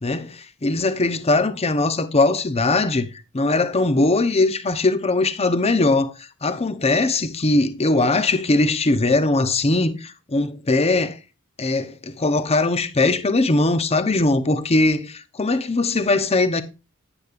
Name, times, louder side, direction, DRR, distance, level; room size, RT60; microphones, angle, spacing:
voice 1, 0.0-3.1 3.3-11.2 11.6-16.6, left 2 dB, 30° left, 0.8 m, -20 dB
10.0 x 10.0 x 2.5 m
head